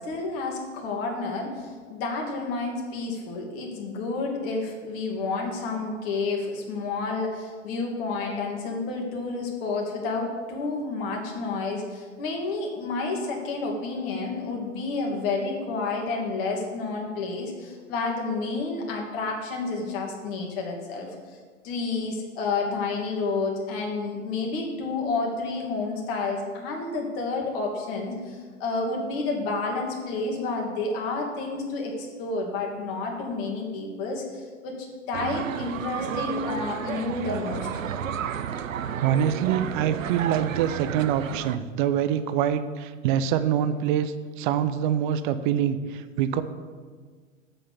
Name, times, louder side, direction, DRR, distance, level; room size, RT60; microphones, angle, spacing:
voice 1, 0.0-21.4 21.6-37.8, left 3 dB, 45° left, 0 dB, 2.4 m, -30 dB
sound 1, 35.1-41.6, right 8 dB, 80° right, 0.6 m, -32 dB
voice 2, 39.0-46.4, right 9 dB, 40° right, 11 dB, 0.7 m, -25 dB
7.5 x 6.7 x 7.0 m, 1.5 s
figure-of-eight pair, 105°, 39 cm